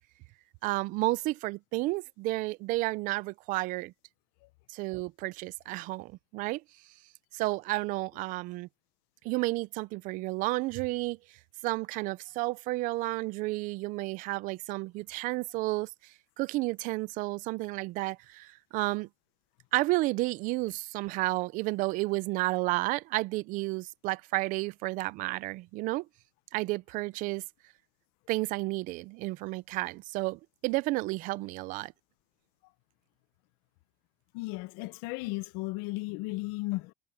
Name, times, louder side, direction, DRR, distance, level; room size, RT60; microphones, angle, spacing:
voice 1, 0.6-3.9 4.7-6.6 7.3-8.7 9.2-11.2 11.6-15.9 16.4-19.1 19.7-26.1 26.5-27.4 28.3-31.9, right 20 dB, 50° right, 0.5 m, -31 dB
voice 2, 34.3-36.9, left 22 dB, 70° left, 0.7 m, -35 dB
cardioid pair, 160°, 17 cm